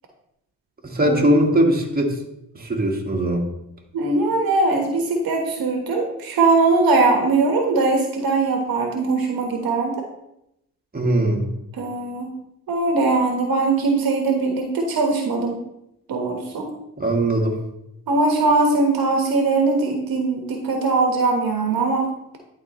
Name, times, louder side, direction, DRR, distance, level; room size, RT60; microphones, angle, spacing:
voice 1, 0.8-2.2 2.6-3.5 10.9-11.5 17.0-17.6, right 1 dB, 25° right, 0 dB, 1.8 m, -20 dB
voice 2, 3.9-10.0 11.8-12.3 12.7-15.6 16.1-16.7 18.1-22.1, right 3 dB, 70° right, 2 dB, 1.3 m, -20 dB
11.5 x 3.9 x 3.1 m, 0.82 s
supercardioid pair, 60°, 36 cm